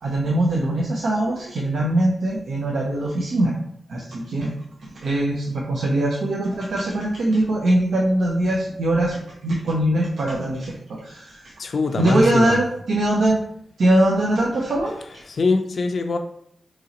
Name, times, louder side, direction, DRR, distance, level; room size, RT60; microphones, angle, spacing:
voice 1, 0.0-3.5 3.9-4.5 4.8-11.5 12.0-13.4 13.8-15.2, right 1 dB, 80° right, -2 dB, 0.5 m, -22 dB
voice 2, 11.6-12.6 15.3-16.2, left 3 dB, 65° left, 5 dB, 0.3 m, -23 dB
3.0 x 2.9 x 3.7 m, 0.70 s
cardioid pair, 55°, 0 cm